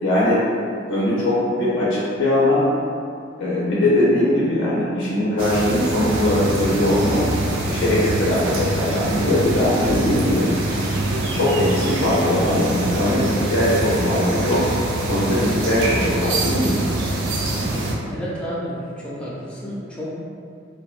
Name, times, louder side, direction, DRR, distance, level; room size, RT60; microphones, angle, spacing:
voice 1, 0.0-0.4 0.9-2.7 3.4-7.3 7.7-10.5 11.3-14.7 15.1-16.8, left 1 dB, 90° left, -7 dB, 0.5 m, -20 dB
sound 1, 5.4-17.9, right 1 dB, 80° right, 0.4 m, -24 dB
voice 2, 18.0-20.1, equal, 5° left, -8 dB, 0.4 m, -31 dB
2.7 x 2.1 x 2.3 m, 2.3 s
head